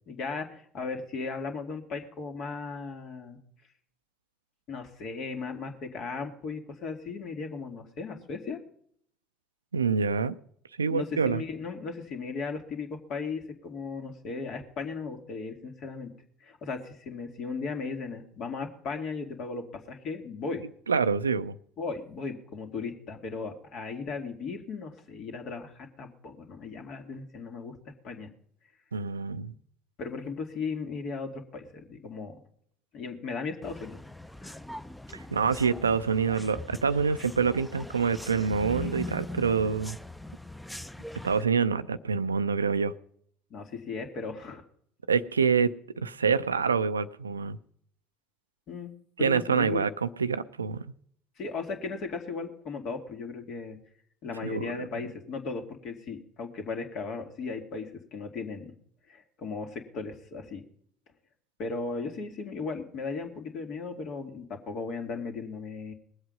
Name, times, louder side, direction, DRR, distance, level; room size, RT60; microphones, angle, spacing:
voice 1, 0.1-3.4 4.7-8.6 10.9-16.1 16.4-20.6 21.8-27.8 28.0-28.3 30.0-32.3 32.9-34.0 34.4-34.6 43.5-44.6 48.7-48.9 49.2-49.9 51.4-53.8 54.2-58.7 59.1-60.6 61.6-65.9, left 4 dB, 55° left, 5 dB, 2.4 m, -36 dB
voice 2, 9.7-10.4 10.8-11.4 20.9-21.5 28.9-29.5 35.1-40.0 41.2-42.9 45.1-47.6 49.2-50.9 54.4-54.7, right 5 dB, 85° right, 14 dB, 0.5 m, -26 dB
sound 1, 33.6-41.4, left 1 dB, 5° left, 0.7 m, -41 dB
20.5 x 8.0 x 5.3 m, 0.64 s
figure-of-eight pair, 60°, 0 cm